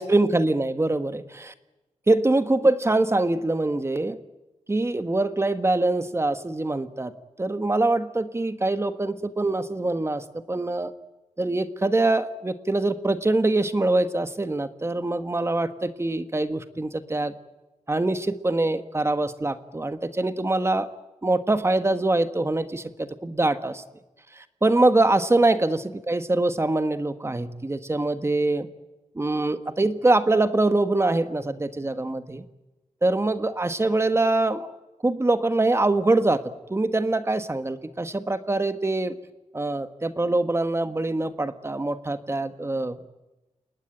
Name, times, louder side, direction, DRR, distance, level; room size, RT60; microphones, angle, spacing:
voice 1, 0.0-1.5 2.1-4.2 4.7-7.1 7.4-10.9 11.4-17.3 17.9-20.9 21.2-23.8 24.3-28.7 29.1-32.4 33.0-34.7 35.0-36.4 36.7-39.2 39.5-43.1, right 2 dB, 20° right, 10 dB, 1.5 m, -24 dB
29.5 x 19.0 x 9.2 m, 1.1 s
wide cardioid pair, 140°, 12 cm